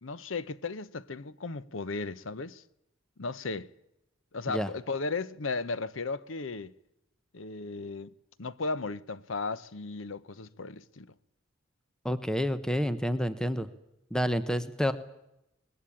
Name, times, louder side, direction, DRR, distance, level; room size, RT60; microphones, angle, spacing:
voice 1, 0.0-2.6 3.2-3.7 4.3-6.7 7.3-8.1 8.4-11.1, left 3 dB, 85° left, 0.9 m, -35 dB
voice 2, 12.0-13.7 14.1-14.9, equal, 5° left, 0.9 m, -29 dB
22.0 x 20.5 x 8.7 m
head